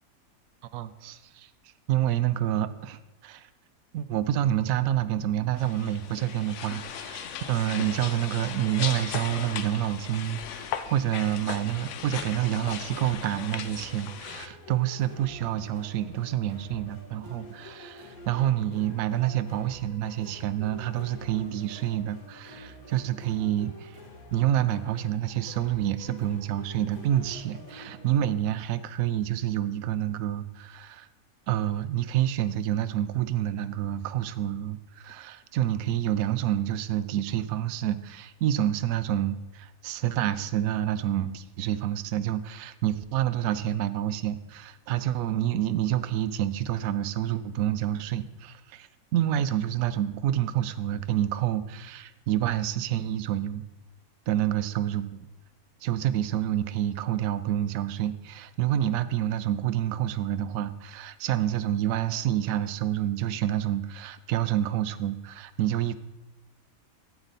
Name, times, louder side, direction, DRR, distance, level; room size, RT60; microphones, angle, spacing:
voice 1, 0.7-1.5 1.9-3.5 3.9-24.0 24.3-31.1 31.5-53.6 54.3-55.3 55.8-65.9, right 12 dB, 75° right, 12 dB, 1.0 m, -28 dB
sound 1, 5.6-14.5, left 8 dB, 65° left, 0.9 m, -37 dB
sound 2, 13.1-28.2, left 1 dB, 80° left, 1.9 m, -48 dB
12.5 x 7.8 x 4.1 m, 1.0 s
omnidirectional pair, 1.5 m